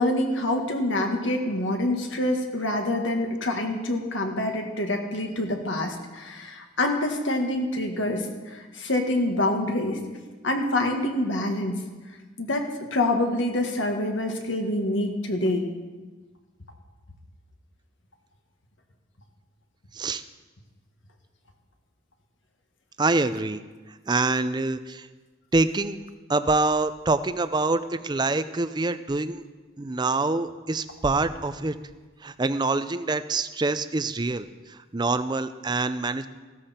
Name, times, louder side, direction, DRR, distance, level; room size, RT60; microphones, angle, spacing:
voice 1, 0.0-10.0 10.4-11.8 12.4-15.7, left 1 dB, 65° left, 3 dB, 1.7 m, -26 dB
voice 2, 23.0-23.6 24.1-25.1 25.5-26.0 26.3-29.4 29.8-31.7 32.2-36.3, right 3 dB, 20° right, 12 dB, 0.5 m, -25 dB
15.5 x 13.0 x 4.4 m, 1.3 s
head